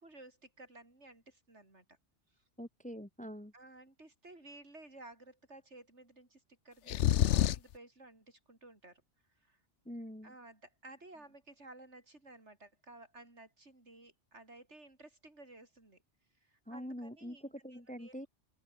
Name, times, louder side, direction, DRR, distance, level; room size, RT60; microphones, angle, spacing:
voice 1, 0.0-2.0 2.3-2.4 3.5-9.0 9.4-9.6 10.2-16.0 16.4-18.3, right 2 dB, 75° right, 5.4 m, -55 dB
voice 2, 2.6-3.5 9.8-10.3 16.7-18.3, equal, 5° left, 1.2 m, -44 dB
sound 1, 6.9-7.8, left 12 dB, 90° left, 1.0 m, -27 dB
open air
omnidirectional pair, 1.2 m